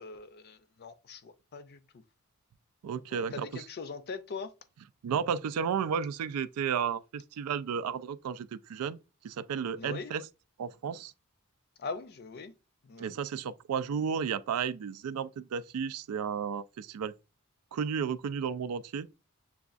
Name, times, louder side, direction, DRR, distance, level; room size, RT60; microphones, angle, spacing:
voice 1, 0.0-1.8 3.1-4.5 9.8-10.1 11.8-12.5 12.8-13.1, left 4 dB, 45° left, 0.4 m, -41 dB
voice 2, 2.8-3.7 5.0-9.0 9.2-10.3 10.6-11.1 13.0-17.1 17.7-19.1, right 7 dB, 85° right, 0.3 m, -33 dB
6.9 x 2.3 x 2.4 m
head